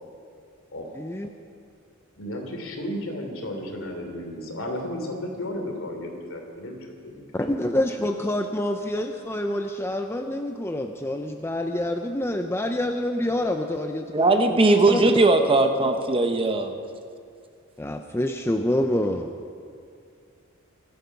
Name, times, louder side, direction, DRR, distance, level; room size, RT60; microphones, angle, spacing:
voice 1, 1.0-1.3 7.3-14.4 14.9-15.0 17.8-19.3, left 1 dB, 10° left, 5 dB, 0.5 m, -27 dB
voice 2, 2.2-7.2, left 1 dB, 65° left, 2 dB, 3.1 m, -33 dB
voice 3, 14.1-16.7, right 2 dB, 25° right, 6 dB, 0.9 m, -19 dB
24.5 x 9.2 x 5.9 m, 2.3 s
head